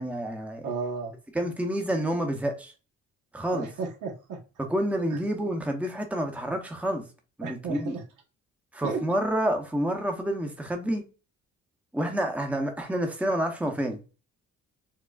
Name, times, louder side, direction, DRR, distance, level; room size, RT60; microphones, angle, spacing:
voice 1, 0.0-0.7 1.3-2.7 3.3-3.7 4.6-7.1 7.4-7.9 8.7-11.1 11.9-14.0, right 1 dB, 5° right, 0.8 m, -28 dB
voice 2, 0.6-1.5 3.5-4.4 4.9-5.2 7.4-8.0 8.8-9.0, right 5 dB, 80° right, 1.1 m, -34 dB
4.6 x 2.4 x 2.4 m
cardioid pair, 90°, 30 cm